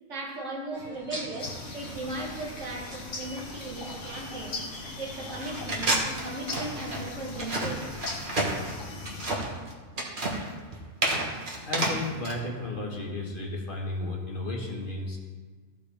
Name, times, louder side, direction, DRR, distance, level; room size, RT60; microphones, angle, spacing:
voice 1, 0.1-4.7 5.0-7.9, right 2 dB, 80° right, 1.7 m, -37 dB
sound 1, 0.7-8.0, right 1 dB, 10° right, 2.0 m, -44 dB
sound 2, 1.4-9.3, left 3 dB, 85° left, 1.7 m, -40 dB
sound 3, 5.3-12.3, right 2 dB, 45° right, 1.6 m, -30 dB
voice 2, 11.6-15.2, left 2 dB, 45° left, 1.6 m, -33 dB
15.0 x 5.3 x 3.4 m
omnidirectional pair, 1.3 m